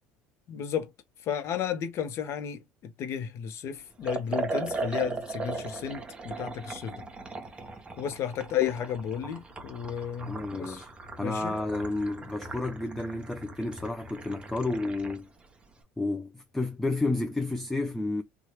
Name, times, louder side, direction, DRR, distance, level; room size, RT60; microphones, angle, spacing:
voice 1, 0.5-0.9 1.3-7.0 8.0-10.8 11.2-11.5, left 9 dB, 55° left, 0.7 m, -33 dB
Liquid, 4.0-15.2, right 3 dB, 20° right, 0.8 m, -38 dB
voice 2, 10.3-10.9 11.2-15.3 16.0-18.2, left 2 dB, 5° left, 0.4 m, -31 dB
2.8 x 2.3 x 3.2 m
hypercardioid pair, 80°, 5 cm